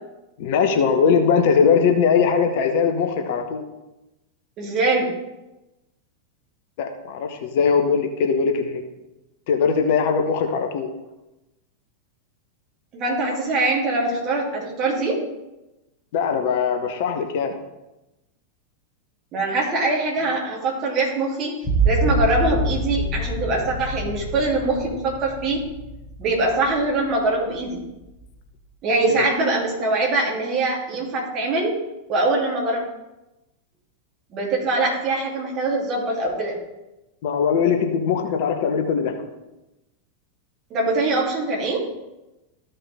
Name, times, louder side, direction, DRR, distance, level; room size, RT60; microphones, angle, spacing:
voice 1, 0.4-3.7 6.8-8.8 9.5-10.9 16.1-17.6 29.1-29.2 37.2-39.2, left 6 dB, 50° left, 5 dB, 1.0 m, -20 dB
voice 2, 4.6-5.1 12.9-15.2 19.3-21.5 21.8-25.6 26.2-27.8 28.8-31.8 32.1-32.8 34.3-36.6 40.7-41.9, right 2 dB, 35° right, -2 dB, 3.0 m, -23 dB
sound 1, 21.6-27.1 27.6-28.2, right 2 dB, 25° left, 2.1 m, -26 dB
14.0 x 5.5 x 3.5 m, 0.99 s
figure-of-eight pair, 90°, 0 cm